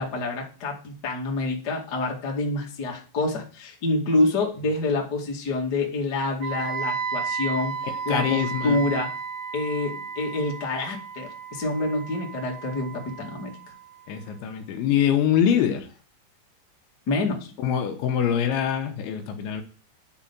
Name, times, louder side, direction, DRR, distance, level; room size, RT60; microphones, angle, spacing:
voice 1, 0.0-7.7 8.0-9.1 9.5-13.5 17.1-17.5, left 2 dB, 45° left, -1 dB, 1.3 m, -27 dB
Wind instrument woodwind instrument, 6.4-14.3, right 6 dB, 75° right, 1.4 m, -34 dB
voice 2, 8.1-8.8 14.1-15.9 17.6-19.6, left 9 dB, 75° left, 5 dB, 3.2 m, -24 dB
10.5 x 4.9 x 7.3 m, 0.39 s
omnidirectional pair, 5.8 m